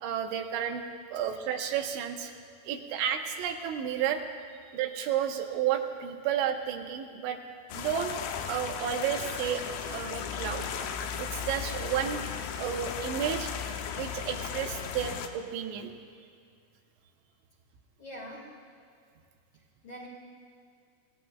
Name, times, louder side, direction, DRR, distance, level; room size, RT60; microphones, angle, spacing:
voice 1, 0.0-0.8 1.1-2.4 2.6-4.2 4.7-7.4 7.7-8.1 8.4-10.7 11.2-12.2 12.6-13.5 14.0-15.9, right 9 dB, 90° right, 4 dB, 3.3 m, -32 dB
sound 1, 7.7-15.3, left 8 dB, 85° left, 2.1 m, -36 dB
voice 2, 18.0-18.7 19.5-20.1, equal, 40° left, -5 dB, 2.3 m, -45 dB
27.0 x 17.0 x 2.4 m, 2.3 s
omnidirectional pair, 5.0 m